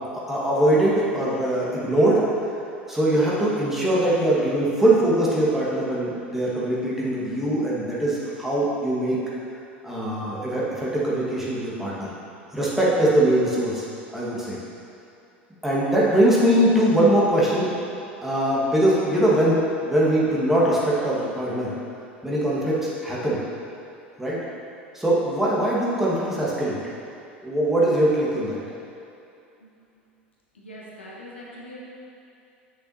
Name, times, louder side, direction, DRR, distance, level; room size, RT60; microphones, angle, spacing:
voice 1, 0.1-2.2 2.9-9.2 9.8-12.1 12.5-13.9 14.1-14.6 15.6-17.7 18.2-21.8 22.2-23.4 24.2-24.4 24.9-26.8 27.4-28.6, right 1 dB, 5° right, -7 dB, 1.7 m, -22 dB
voice 2, 30.5-31.8, left 1 dB, 75° left, -5 dB, 1.3 m, -42 dB
8.4 x 6.6 x 2.8 m, 2.6 s
figure-of-eight pair, 75°, 6 cm